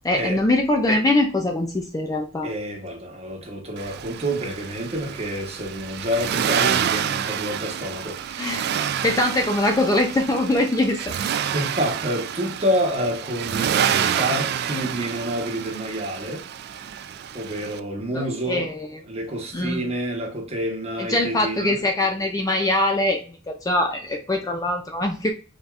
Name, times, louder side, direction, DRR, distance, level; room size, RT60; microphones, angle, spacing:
voice 1, 0.0-2.5 8.4-8.7 9.0-11.1 18.1-18.9 19.5-19.8 21.0-23.4 23.6-25.3, left 1 dB, 15° left, 0.4 m, -22 dB
voice 2, 2.4-8.5 11.5-16.4 17.3-18.7 19.1-21.8, equal, 30° right, 1.1 m, -28 dB
Accelerating revving vroom, 3.8-17.8, right 9 dB, 50° right, 0.3 m, -28 dB
4.0 x 3.5 x 2.4 m
head